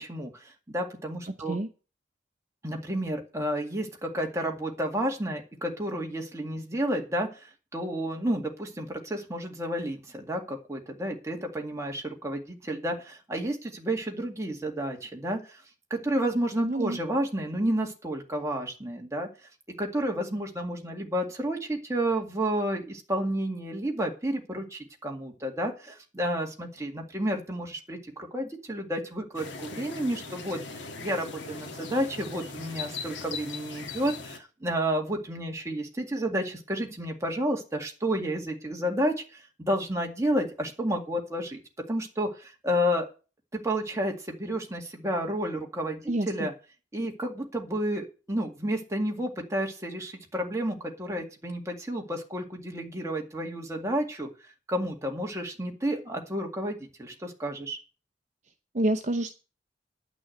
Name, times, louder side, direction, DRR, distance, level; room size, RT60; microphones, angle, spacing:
voice 1, 0.0-1.6 2.6-7.5 7.7-15.6 15.9-19.3 19.8-41.6 41.9-43.1 43.5-46.5 46.9-54.3 54.7-57.8, right 1 dB, 15° right, 1 dB, 2.0 m, -31 dB
voice 2, 16.6-17.0 46.1-46.5 58.7-59.3, right 1 dB, 40° right, 6 dB, 0.8 m, -28 dB
sound 1, 29.3-34.4, left 4 dB, 80° left, 1.6 m, -39 dB
11.0 x 6.2 x 7.8 m, 0.34 s
head